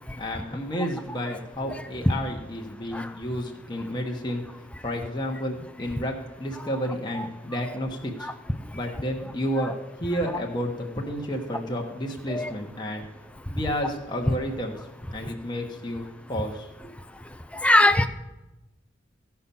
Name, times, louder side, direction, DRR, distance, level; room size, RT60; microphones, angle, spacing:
voice 1, 0.2-4.4 4.8-8.3 8.7-9.7 10.0-13.0 13.5-14.7 15.1-16.9, equal, 25° left, 0 dB, 1.2 m, -31 dB
voice 2, 17.6-18.1, left 1 dB, 5° left, 9 dB, 0.5 m, -20 dB
15.5 x 5.8 x 7.0 m, 1.0 s
head